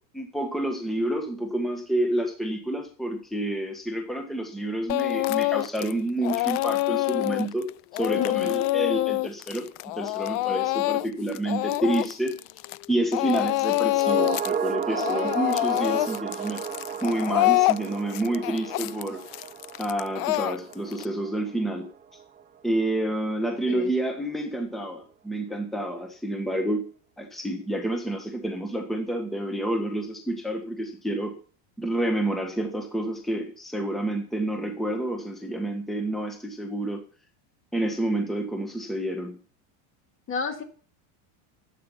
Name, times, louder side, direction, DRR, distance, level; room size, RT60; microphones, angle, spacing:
voice 1, 0.1-7.7 7.9-9.7 9.9-12.3 12.9-16.6 17.0-19.2 19.8-21.9 22.6-26.8 27.2-31.3 31.8-37.0 37.7-39.4, right 1 dB, ahead, 3 dB, 1.5 m, -29 dB
Speech / Crying sobbing, 4.9-5.9 6.2-12.9 13.1-14.5 14.8-21.0, left 20 dB, 50° left, 0.5 m, -26 dB
voice 2, 8.2-8.6 23.7-23.9 40.3-40.6, left 5 dB, 30° left, 5 dB, 2.4 m, -31 dB
sound 1, 13.9-22.4 22.7-22.8, right 7 dB, 20° right, 0.9 m, -34 dB
12.5 x 8.8 x 5.8 m, 0.41 s
supercardioid pair, 140°, 44 cm